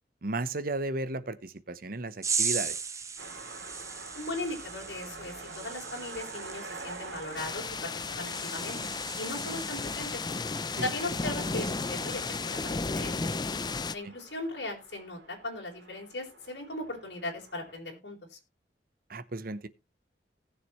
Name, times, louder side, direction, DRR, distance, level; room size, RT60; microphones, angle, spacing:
voice 1, 0.2-2.8 10.8-10.9 14.0-14.1 19.1-19.7, right 2 dB, 55° right, 1.0 m, -34 dB
sound 1, 2.2-12.9 13.2-13.6, right 5 dB, 15° right, 1.1 m, -38 dB
sound 2, 3.2-17.8, right 3 dB, 80° right, 3.2 m, -47 dB
voice 2, 4.2-8.8 9.2-10.2 10.8-13.3 13.9-18.4, left 2 dB, 70° left, 4.2 m, -38 dB
sound 3, 7.4-14.0, left 4 dB, 25° left, 0.5 m, -34 dB
18.5 x 6.8 x 3.1 m
head